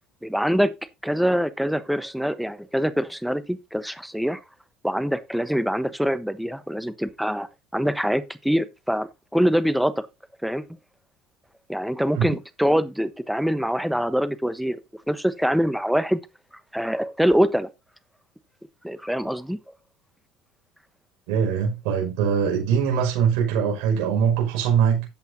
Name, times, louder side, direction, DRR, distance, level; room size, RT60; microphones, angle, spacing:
voice 1, 0.2-0.7 1.0-4.4 4.8-7.5 7.7-10.1 10.4-10.6 11.7-14.8 15.1-16.2 16.7-17.7 18.8-19.6, equal, ahead, 1.1 m, -24 dB
voice 2, 21.3-25.1, right 7 dB, 75° right, 5.8 m, -22 dB
13.0 x 8.2 x 2.8 m
supercardioid pair, 115°, 0 cm